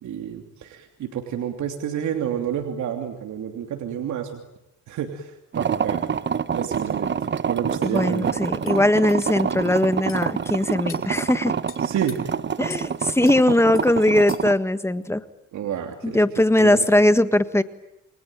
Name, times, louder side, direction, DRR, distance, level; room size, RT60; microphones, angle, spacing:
voice 1, 0.0-4.4 4.9-6.0 6.5-7.1 7.5-8.4 11.8-12.2 15.5-16.2 16.6-16.7, right 9 dB, 75° right, 4 dB, 3.1 m, -29 dB
sound 1, 5.5-14.5, right 7 dB, 35° right, 1.0 m, -27 dB
sound 2, 7.2-7.3 7.8-7.9 8.6-8.8 9.1-9.2 10.1-10.2 10.9-11.1 11.7-12.2 12.7-12.9 13.2-13.4 13.7-13.9 14.3-14.6, left 7 dB, 45° left, 3.2 m, -41 dB
voice 2, 7.9-11.5 12.6-15.2 16.0-17.6, left 1 dB, 10° left, 12 dB, 1.7 m, -20 dB
29.5 x 22.5 x 9.1 m, 0.86 s
cardioid pair, 90°, 30 cm